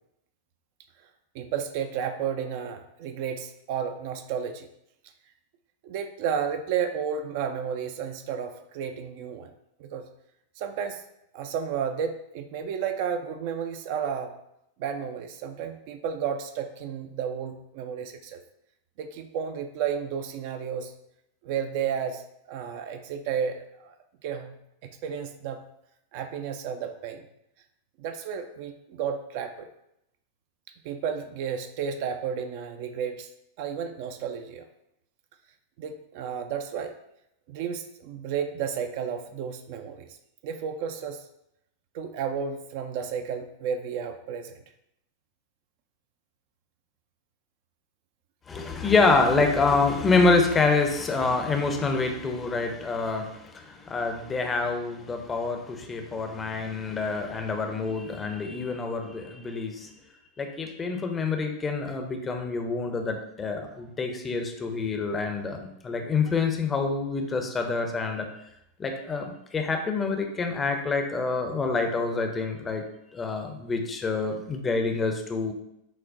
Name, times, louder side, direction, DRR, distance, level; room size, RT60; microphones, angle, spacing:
voice 1, 1.3-4.7 5.8-9.5 9.8-10.1 10.6-11.0 11.3-14.4 14.8-18.4 19.0-20.9 21.4-23.9 24.2-25.6 26.1-27.3 28.0-29.7 30.8-33.3 33.6-34.7 35.8-36.9 37.5-40.2 40.4-41.2 41.9-44.6 48.6-48.7, right 7 dB, 45° right, 7 dB, 0.3 m, -32 dB
voice 2, 48.5-59.9 60.4-68.3 68.8-72.8 73.1-75.5, left 4 dB, 20° left, 4 dB, 0.5 m, -26 dB
6.3 x 2.1 x 2.4 m, 0.79 s
figure-of-eight pair, 90°, 0 cm